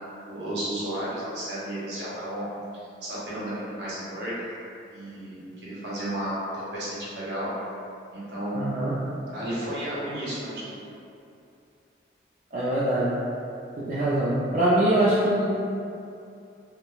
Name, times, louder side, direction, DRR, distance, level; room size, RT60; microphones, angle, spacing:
voice 1, 0.2-2.5 2.7-4.5 4.9-7.5 8.1-8.6 9.3-10.8, right 1 dB, 75° right, -9 dB, 0.8 m, -33 dB
voice 2, 8.5-9.0 12.5-13.2 13.8-15.4, right 1 dB, 45° right, -9 dB, 0.3 m, -23 dB
2.3 x 2.1 x 3.0 m, 2.5 s
head